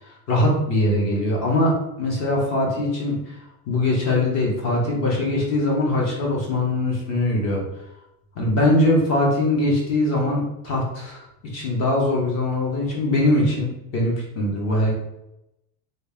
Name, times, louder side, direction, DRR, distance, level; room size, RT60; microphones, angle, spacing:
voice 1, 0.1-3.4 3.7-7.6 8.3-11.2 11.5-14.9, left 1 dB, 35° left, -3 dB, 1.3 m, -22 dB
3.3 x 2.8 x 3.4 m, 0.87 s
supercardioid pair, 145°, 43 cm